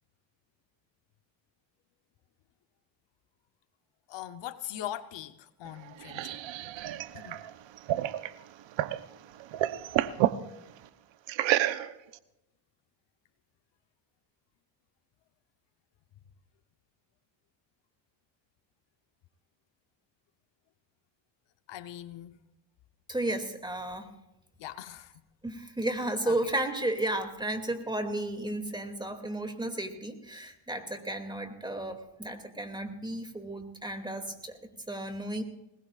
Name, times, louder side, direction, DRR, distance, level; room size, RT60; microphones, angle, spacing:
voice 1, 4.1-6.4 7.1-7.4 21.7-22.4 24.6-25.1 26.2-26.5, left 12 dB, 70° left, 10 dB, 1.0 m, -41 dB
sound 1, 5.7-9.0 9.4-10.4 11.3-12.2, right 13 dB, 75° right, 1.0 m, -30 dB
voice 2, 23.1-24.1 25.4-34.5 34.9-35.4, right 1 dB, 10° right, 5 dB, 2.5 m, -33 dB
21.5 x 20.5 x 2.5 m, 0.91 s
cardioid pair, 100°, 45 cm